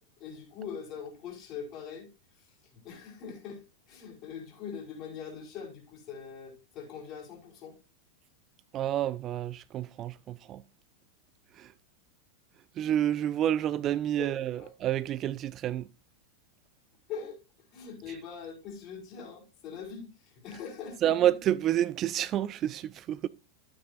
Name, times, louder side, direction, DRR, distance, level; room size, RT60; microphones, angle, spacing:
voice 1, 0.2-2.1 2.4-2.5 2.7-7.8 14.2-14.7 17.1-17.4 17.7-21.3, left 6 dB, 40° left, 5.3 m, -42 dB
voice 2, 8.7-10.6 11.6-11.7 12.8-15.9 21.0-23.3, right 11 dB, 30° right, 0.4 m, -29 dB
13.0 x 8.9 x 2.6 m
figure-of-eight pair, 90°, 0 cm